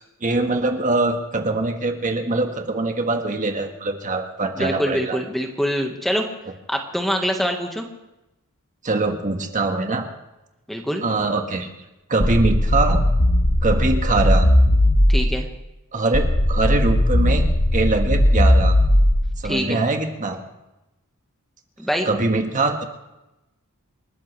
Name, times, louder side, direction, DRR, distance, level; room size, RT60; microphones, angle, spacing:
voice 1, 0.0-5.2 8.8-10.0 11.0-11.7 12.1-13.0 13.6-14.5 15.9-17.5 17.7-18.7 19.4-20.4 22.0-22.9, right 2 dB, 35° right, 4 dB, 1.4 m, -23 dB
voice 2, 4.6-6.3 6.7-7.8 10.7-11.1 15.1-15.5 19.4-19.8 21.8-22.1, equal, ahead, 3 dB, 1.4 m, -24 dB
sound 1, 12.2-15.5 16.1-19.5, left 1 dB, 60° left, 1.5 m, -17 dB
28.5 x 13.5 x 3.3 m, 0.97 s
head